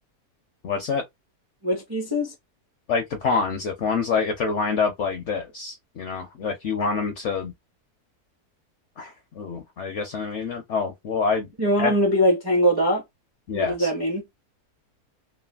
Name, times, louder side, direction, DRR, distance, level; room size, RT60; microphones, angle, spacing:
voice 1, 0.6-1.0 2.9-7.5 9.0-11.5 11.8-11.9 13.5-13.9, left 5 dB, 65° left, 0.7 m, -26 dB
voice 2, 1.6-2.3 11.6-13.0 13.5-14.2, equal, 30° right, 0.4 m, -22 dB
3.2 x 2.1 x 2.3 m
omnidirectional pair, 1.7 m